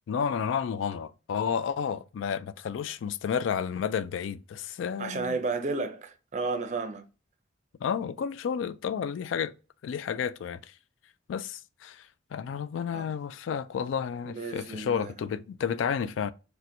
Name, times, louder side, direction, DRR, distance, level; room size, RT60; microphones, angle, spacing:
voice 1, 0.1-5.4 7.8-9.5 9.8-10.7 11.3-16.3, left 7 dB, 85° left, 0.3 m, -31 dB
voice 2, 5.0-7.0 12.9-13.1 14.3-15.1, right 3 dB, 40° right, 0.5 m, -32 dB
4.2 x 2.1 x 2.5 m
head